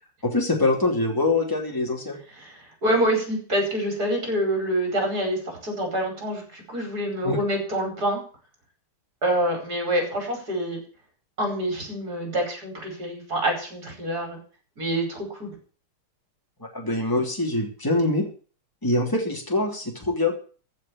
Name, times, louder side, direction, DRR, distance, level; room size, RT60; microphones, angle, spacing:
voice 1, 0.2-2.2 7.2-7.4 16.7-18.2 18.8-20.3, left 2 dB, 10° left, 1 dB, 3.0 m, -24 dB
voice 2, 2.3-8.2 9.2-10.8 11.4-14.4 14.8-15.5, right 1 dB, 45° right, 2 dB, 5.6 m, -26 dB
14.5 x 6.0 x 8.7 m, 0.39 s
omnidirectional pair, 2.4 m